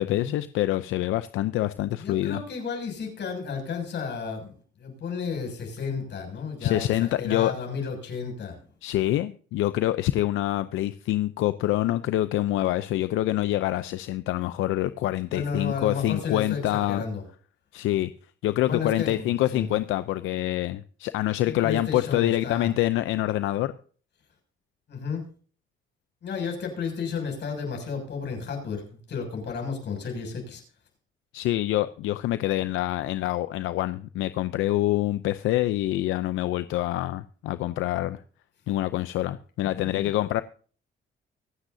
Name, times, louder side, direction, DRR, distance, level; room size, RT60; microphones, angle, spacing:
voice 1, 0.0-2.4 6.6-7.5 8.8-17.0 17.7-18.1 18.4-23.7 31.3-38.2 38.7-40.4, left 15 dB, 90° left, 0.6 m, -26 dB
voice 2, 2.0-8.6 15.3-17.2 18.6-19.7 21.4-22.7 24.9-25.3 26.2-30.6 39.7-40.1, left 5 dB, 60° left, 6.8 m, -33 dB
25.0 x 9.0 x 2.7 m
cardioid pair, 90°, 20 cm